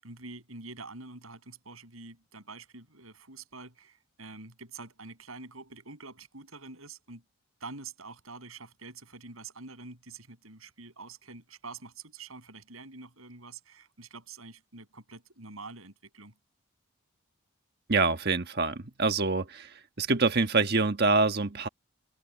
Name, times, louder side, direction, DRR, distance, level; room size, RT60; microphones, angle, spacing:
voice 1, 0.0-7.2 7.6-16.3, right 3 dB, 85° right, 7.5 m, -46 dB
voice 2, 17.9-19.7 20.0-21.7, right 3 dB, 50° right, 1.4 m, -25 dB
head